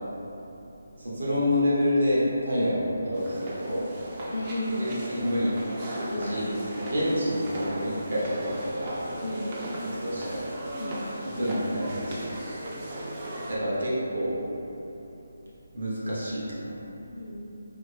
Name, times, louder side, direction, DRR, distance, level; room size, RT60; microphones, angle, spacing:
voice 1, 1.0-3.9 4.8-5.5 6.1-6.5 6.7-9.0 10.0-10.5 11.4-12.3 13.4-14.4 15.7-16.8, equal, 70° right, -8 dB, 1.2 m, -28 dB
sound 1, 3.1-13.6, right 1 dB, 25° right, 0.4 m, -36 dB
voice 2, 4.3-4.9 6.1-6.4 9.2-9.5 10.8-11.0 17.1-17.5, left 1 dB, 75° left, -2 dB, 0.6 m, -33 dB
4.1 x 2.1 x 3.2 m, 3.0 s
figure-of-eight pair, 170°, 0 cm